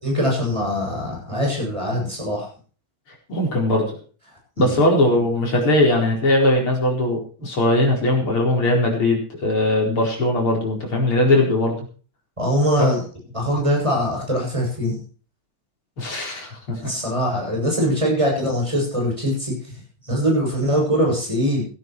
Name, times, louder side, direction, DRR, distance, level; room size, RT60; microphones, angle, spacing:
voice 1, 0.0-2.5 4.6-4.8 12.4-13.0 13.3-15.0 16.8-19.6 20.0-21.6, equal, 15° right, -1 dB, 7.8 m, -22 dB
voice 2, 3.3-3.9 4.6-11.8 12.8-12.9 16.0-16.9, left 1 dB, 75° left, -1 dB, 5.5 m, -20 dB
15.5 x 13.0 x 4.6 m, 0.39 s
omnidirectional pair, 2.4 m